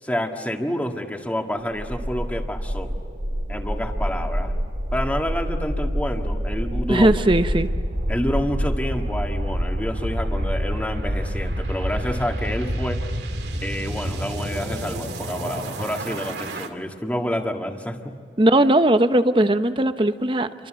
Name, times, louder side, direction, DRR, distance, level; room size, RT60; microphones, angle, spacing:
voice 1, 0.0-3.0 3.5-4.5 4.9-7.1 8.1-13.0 13.6-18.2, equal, 10° left, 3 dB, 1.9 m, -28 dB
sound 1, 1.7-16.7, equal, 75° right, 2.3 m, -27 dB
voice 2, 6.9-7.7 18.4-20.7, right 1 dB, 30° right, 10 dB, 0.9 m, -18 dB
29.5 x 24.5 x 7.7 m, 2.3 s
head